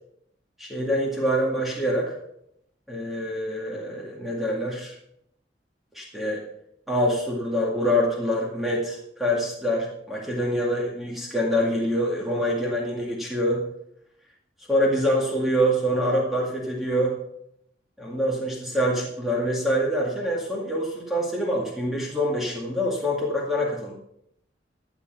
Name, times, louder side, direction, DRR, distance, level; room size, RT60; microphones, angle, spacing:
voice 1, 0.6-2.2 2.9-5.0 5.9-6.4 6.9-13.6 14.7-17.2 18.0-23.9, equal, ahead, -3 dB, 2.1 m, -25 dB
13.5 x 7.4 x 6.0 m, 0.75 s
head